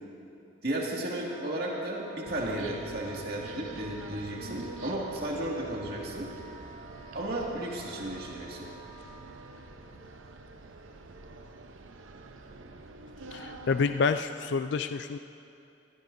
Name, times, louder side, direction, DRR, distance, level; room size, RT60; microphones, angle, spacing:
voice 1, 0.6-6.3 7.1-8.7, right 1 dB, 50° right, -3 dB, 2.2 m, -34 dB
Wind instrument woodwind instrument, 1.2-9.5, right 2 dB, 35° right, 2.0 m, -50 dB
sound 1, 2.2-14.0, right 2 dB, 90° right, 0.8 m, -46 dB
voice 2, 13.3-15.2, left 5 dB, 65° left, 9 dB, 0.3 m, -28 dB
21.0 x 16.0 x 2.7 m, 2.7 s
head